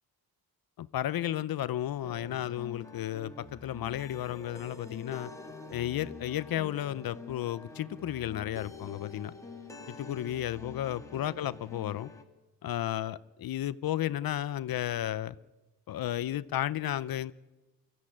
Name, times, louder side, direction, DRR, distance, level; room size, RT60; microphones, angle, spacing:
voice 1, 0.8-5.3 5.7-9.3 9.9-12.1 12.6-15.4 15.9-17.3, left 12 dB, 75° left, 0.6 m, -33 dB
sound 1, 2.0-12.2, left 3 dB, 10° left, 2.2 m, -46 dB
24.0 x 14.0 x 9.8 m
wide cardioid pair, 140°, 36 cm